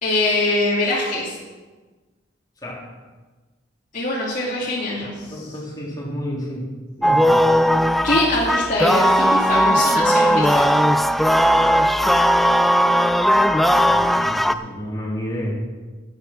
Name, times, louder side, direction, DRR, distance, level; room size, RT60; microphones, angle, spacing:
voice 1, 0.0-1.3 3.9-5.5 8.0-10.6, left 2 dB, 45° left, -6 dB, 2.7 m, -23 dB
voice 2, 5.3-6.7 7.0-7.4 13.9-15.5, equal, 20° left, -4 dB, 3.8 m, -31 dB
sound 1, 7.0-14.5, equal, ahead, 0.4 m, -17 dB
11.5 x 10.5 x 6.1 m, 1.3 s
head